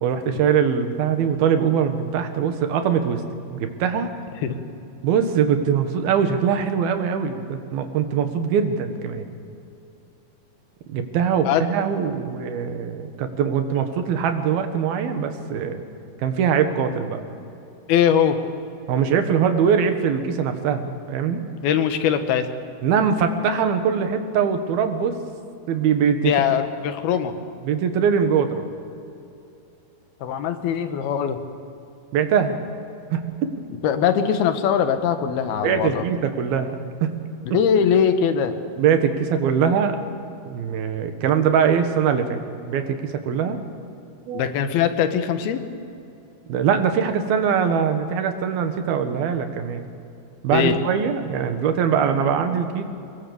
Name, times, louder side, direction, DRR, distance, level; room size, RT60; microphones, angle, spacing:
voice 1, 0.0-3.2 3.5-4.1 5.0-9.3 10.9-15.8 16.2-17.2 18.9-21.4 22.8-25.2 25.7-26.3 27.6-28.7 32.1-32.6 33.1-33.2 35.6-37.1 37.5-37.6 38.8-40.0 40.5-42.4 42.7-43.6 44.3-44.5 46.5-49.9 50.4-52.8, right 7 dB, 80° right, 7 dB, 3.4 m, -22 dB
voice 2, 17.9-18.4 21.6-22.5 26.2-27.3 30.2-31.4 33.8-36.0 37.5-38.6 44.3-45.6 50.5-50.8, left 8 dB, 85° left, 8 dB, 3.2 m, -21 dB
24.0 x 21.5 x 7.0 m, 2.7 s
omnidirectional pair, 4.3 m